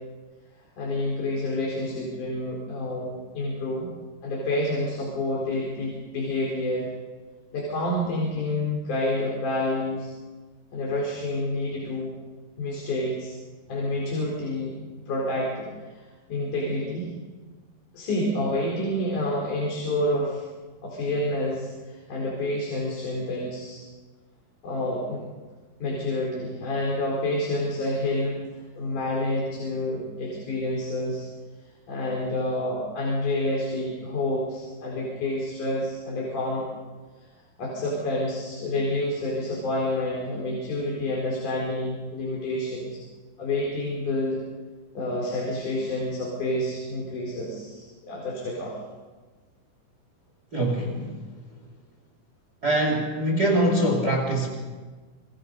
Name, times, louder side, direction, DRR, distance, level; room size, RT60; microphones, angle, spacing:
voice 1, 0.8-3.9 4.2-6.9 7.5-10.1 10.7-12.2 12.6-13.3 13.7-14.7 15.1-17.1 17.9-20.4 20.8-23.8 24.6-25.2 25.8-28.4 28.8-31.3 31.9-36.6 37.6-43.0 43.4-44.4 44.9-48.8, left 1 dB, 50° left, -2 dB, 5.6 m, -28 dB
voice 2, 50.5-51.1 52.6-54.5, right 1 dB, 25° right, 2 dB, 2.9 m, -23 dB
29.5 x 23.0 x 5.4 m, 1.4 s
omnidirectional pair, 4.5 m